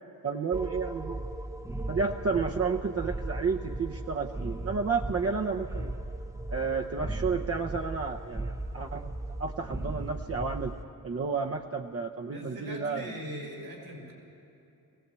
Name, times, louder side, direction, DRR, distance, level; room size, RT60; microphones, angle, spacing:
voice 1, 0.2-1.2 1.9-5.9 6.5-9.1 9.4-10.7 11.0-13.1, right 5 dB, 40° right, 2 dB, 0.8 m, -31 dB
sound 1, 0.5-10.8, right 2 dB, 10° right, 0.7 m, -37 dB
voice 2, 12.3-14.1, equal, 90° right, 0 dB, 5.1 m, -40 dB
21.0 x 17.5 x 8.2 m, 2.8 s
wide cardioid pair, 95°, 36 cm